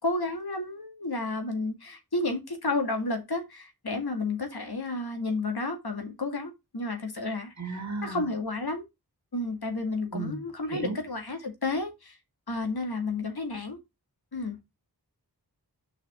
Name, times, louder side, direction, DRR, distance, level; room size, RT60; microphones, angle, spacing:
voice 1, 0.0-7.5 8.0-8.9 9.3-12.2 12.5-13.8 14.3-14.6, left 2 dB, 70° left, 2.1 m, -31 dB
voice 2, 7.6-8.3 10.1-10.4 10.7-11.0, right 3 dB, 45° right, 2.1 m, -34 dB
7.2 x 5.6 x 3.6 m
wide cardioid pair, 65°, 39 cm